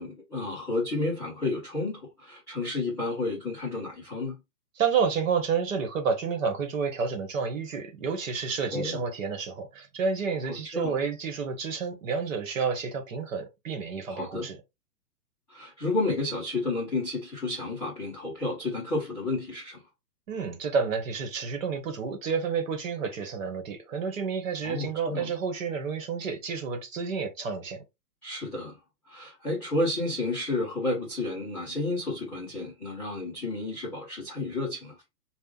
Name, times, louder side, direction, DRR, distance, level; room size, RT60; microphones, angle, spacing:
voice 1, 0.0-4.4 8.7-9.0 10.5-11.0 14.1-14.5 15.5-19.8 24.6-25.3 28.2-28.8 29.1-35.0, left 2 dB, 5° left, 0.6 m, -31 dB
voice 2, 4.8-14.6 20.3-27.8, right 5 dB, 50° right, 1.2 m, -30 dB
5.4 x 2.4 x 2.3 m
hypercardioid pair, 165°, 49 cm